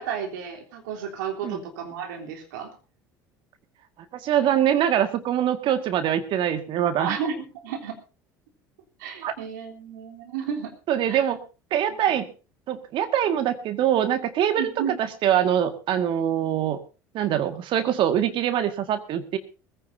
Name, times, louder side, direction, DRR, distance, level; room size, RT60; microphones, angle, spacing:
voice 1, 0.0-2.7 7.0-8.0 9.0-10.7 11.1-11.2 14.5-14.9, right 7 dB, 75° right, 3 dB, 3.5 m, -32 dB
voice 2, 4.2-7.2 9.2-9.3 10.9-11.4 11.7-12.3 12.7-14.7 15.2-16.8 17.1-19.4, right 10 dB, 55° right, 9 dB, 1.9 m, -23 dB
21.0 x 15.5 x 2.7 m, 0.33 s
hypercardioid pair, 70°, 10 cm